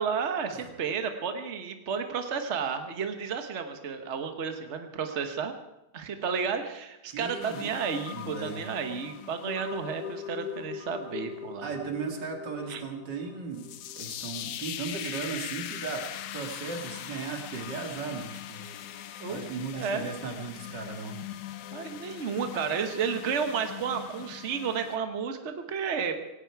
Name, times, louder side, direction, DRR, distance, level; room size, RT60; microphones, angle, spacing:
voice 1, 0.0-5.5 5.9-11.7 12.7-12.8 19.2-19.5 19.7-20.1 21.7-26.1, right 6 dB, 45° right, 7 dB, 1.4 m, -32 dB
voice 2, 7.1-7.8 8.1-8.7 11.6-16.1 16.3-18.7 19.0-21.3, right 4 dB, 90° right, 3 dB, 2.9 m, -37 dB
sound 1, 7.4-25.0, left 10 dB, 70° left, 1.2 m, -41 dB
17.5 x 17.0 x 4.7 m, 0.92 s
omnidirectional pair, 1.8 m